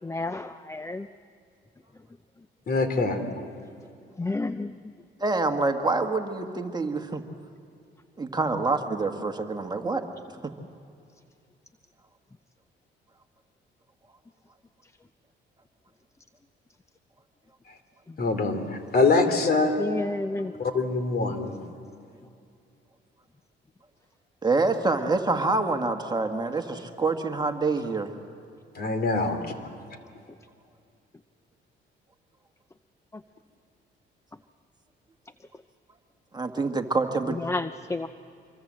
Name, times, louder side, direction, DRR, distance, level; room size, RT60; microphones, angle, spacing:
voice 1, 0.0-1.1 4.2-4.7 19.8-20.5 37.4-38.1, left 2 dB, 15° left, 11 dB, 0.6 m, -30 dB
voice 2, 2.7-3.2 18.2-19.8 20.6-21.5 28.7-29.6, left 3 dB, 50° left, 8 dB, 2.8 m, -24 dB
voice 3, 5.2-7.2 8.2-10.0 24.4-28.1 36.3-37.4, right 3 dB, 20° right, 4 dB, 1.7 m, -26 dB
26.0 x 22.5 x 7.6 m, 2.5 s
cardioid pair, 90°, 20 cm